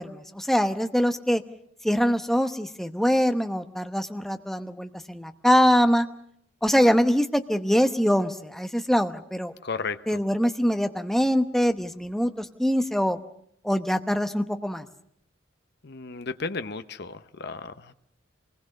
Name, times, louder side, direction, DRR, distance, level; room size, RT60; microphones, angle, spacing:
voice 1, 0.0-1.4 1.8-6.1 6.6-9.5 10.1-13.2 13.6-14.8, equal, ahead, 7 dB, 0.9 m, -23 dB
voice 2, 9.6-10.2 15.8-17.9, left 4 dB, 55° left, 10 dB, 0.9 m, -34 dB
26.0 x 20.5 x 6.5 m, 0.70 s
head